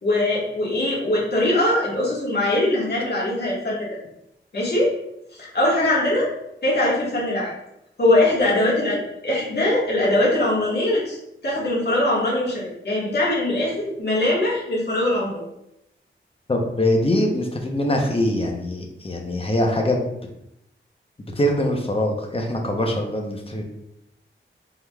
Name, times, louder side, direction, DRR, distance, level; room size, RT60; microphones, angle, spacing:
voice 1, 0.0-3.9 4.5-4.9 5.3-6.3 6.6-7.5 8.0-11.2 11.4-15.5, left 1 dB, 55° left, -5 dB, 1.5 m, -21 dB
voice 2, 16.5-20.1 21.4-23.6, left 1 dB, 25° left, 1 dB, 0.7 m, -23 dB
4.7 x 3.7 x 2.3 m, 0.82 s
wide cardioid pair, 95°, 21 cm